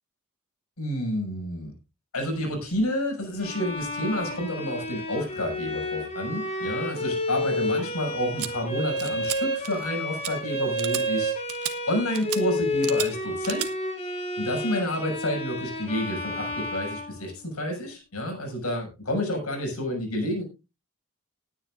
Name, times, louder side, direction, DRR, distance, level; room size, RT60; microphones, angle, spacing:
voice 1, 0.8-1.7 2.1-11.3 11.9-13.7 14.4-20.4, left 1 dB, 85° left, 2 dB, 6.8 m, -29 dB
Bowed string instrument, 3.4-17.7, left 1 dB, 30° left, 3.5 m, -30 dB
sound 1, 8.4-8.5 9.0-9.4 9.6-9.9 10.2-10.3 10.8-11.0 11.5-11.7 12.1-12.4 12.8-13.1 13.4-13.7, right 12 dB, 90° right, 1.5 m, -32 dB
19.5 x 10.0 x 2.6 m, 0.27 s
head